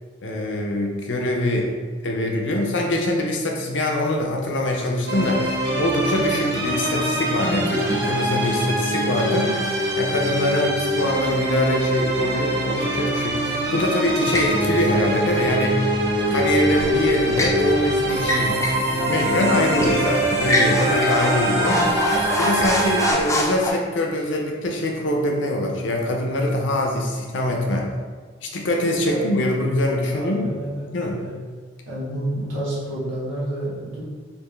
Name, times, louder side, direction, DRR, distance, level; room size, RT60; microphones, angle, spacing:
voice 1, 0.2-1.7 2.0-15.8 16.1-21.9 22.4-27.9 28.4-30.6 30.9-31.2, left 1 dB, 70° left, 1 dB, 0.6 m, -23 dB
sound 1, 5.1-23.1, right 1 dB, 60° right, 0.7 m, -23 dB
sound 2, 14.3-14.6 16.8-17.6 18.2-18.9 19.2-19.3 19.8-20.0 20.4-23.7, left 1 dB, 15° left, 0.3 m, -25 dB
voice 2, 30.1-31.4 31.8-34.0, right 1 dB, 75° right, -7 dB, 1.2 m, -29 dB
3.4 x 2.5 x 3.1 m, 1.5 s
head